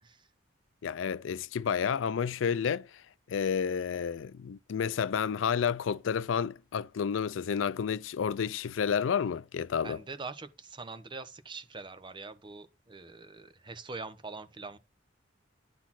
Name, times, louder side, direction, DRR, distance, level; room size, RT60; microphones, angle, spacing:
voice 1, 0.8-2.9 3.3-10.0, left 7 dB, 85° left, 0.4 m, -30 dB
voice 2, 9.8-14.8, right 3 dB, 25° right, 0.9 m, -43 dB
10.5 x 4.1 x 5.9 m
head